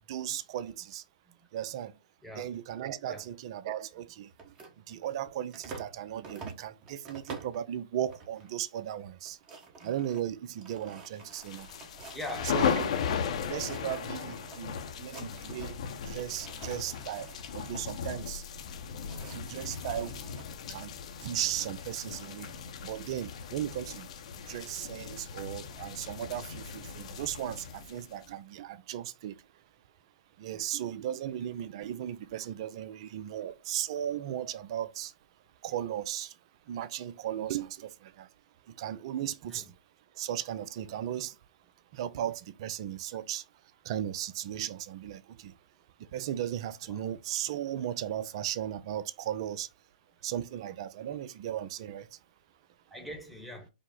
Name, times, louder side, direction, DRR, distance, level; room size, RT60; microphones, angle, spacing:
voice 1, 0.1-1.0 1.5-1.9 2.3-4.5 4.9-9.4 9.8-11.7 12.4-12.9 13.5-15.8 16.0-18.4 19.3-20.2 20.7-20.9 21.2-22.5 22.8-24.1 24.4-29.4 30.4-35.1 35.6-36.3 36.7-38.3 38.7-39.7 40.2-41.4 41.9-43.4 43.8-45.5 46.0-49.7 50.2-52.1, right 11 dB, 45° right, 0.4 m, -36 dB
sound 1, 4.3-6.0 6.2-7.6 8.1-8.5 8.8-8.9 9.2-13.2 13.5-14.6 14.9-15.8 16.1-17.8 18.6-20.5, right 4 dB, 25° right, 1.1 m, -49 dB
sound 2, 11.3-28.3, left 7 dB, 55° left, 0.7 m, -37 dB
voice 2, 12.1-12.9 39.5-39.6 46.9-47.0 52.9-53.7, left 1 dB, ahead, 1.1 m, -42 dB
5.0 x 2.0 x 3.7 m
hypercardioid pair, 130°, 4 cm